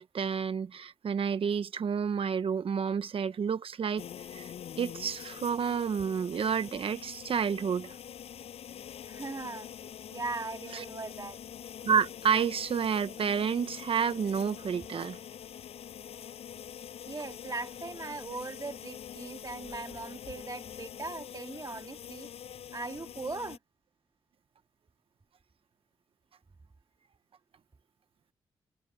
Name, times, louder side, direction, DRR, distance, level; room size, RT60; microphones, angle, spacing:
voice 1, 0.0-4.0 4.3-4.5 4.8-7.9 10.7-10.8 11.8-15.2, right 7 dB, 65° right, 1.2 m, -30 dB
sound 1, 4.0-23.6, left 9 dB, 80° left, 7.5 m, -45 dB
voice 2, 9.0-9.7 10.1-11.4 17.1-22.3 22.7-23.6, right 3 dB, 35° right, 2.3 m, -39 dB
supercardioid pair, 55°, 10 cm